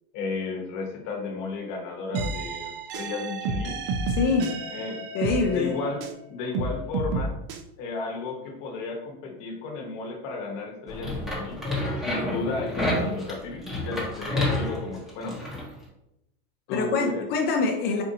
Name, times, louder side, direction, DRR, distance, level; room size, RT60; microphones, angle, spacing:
voice 1, 0.1-3.8 4.7-5.0 5.4-7.4 7.8-11.6 12.0-15.4 16.7-17.3, left 3 dB, 55° left, 1 dB, 1.0 m, -34 dB
sound 1, 2.1-6.2 6.5-7.6, right 3 dB, 60° right, 0.5 m, -31 dB
voice 2, 4.2-4.5 5.1-5.8 16.7-18.0, left 4 dB, 35° left, 3 dB, 0.4 m, -24 dB
sound 2, 10.9-15.7, left 1 dB, ahead, 0.9 m, -29 dB
4.3 x 2.6 x 2.7 m, 0.86 s
supercardioid pair, 140°, 31 cm